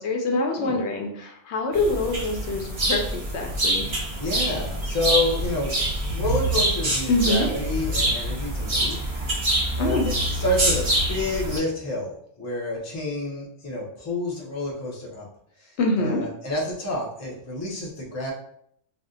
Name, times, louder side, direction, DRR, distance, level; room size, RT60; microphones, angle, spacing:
voice 1, 0.0-3.8 7.1-7.5 9.8-10.1 15.8-16.2, left 2 dB, 75° left, 2 dB, 0.9 m, -25 dB
sound 1, 1.7-11.6, right 1 dB, 35° right, 0.7 m, -25 dB
voice 2, 4.2-5.8 6.1-9.0 9.8-10.0 10.3-15.3 15.6-15.7 16.0-18.3, left 2 dB, 20° left, -3 dB, 0.5 m, -29 dB
2.6 x 2.0 x 3.6 m, 0.68 s
omnidirectional pair, 1.2 m